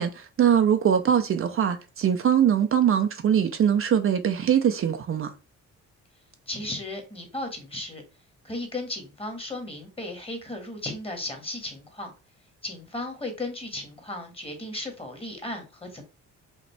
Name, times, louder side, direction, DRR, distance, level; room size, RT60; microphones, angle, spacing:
voice 1, 0.0-5.3, right 8 dB, 45° right, 0.6 m, -22 dB
voice 2, 6.5-8.0 8.4-12.1 12.6-16.0, left 2 dB, 20° left, 1.5 m, -35 dB
5.1 x 2.5 x 3.3 m
cardioid pair, 90°, 30 cm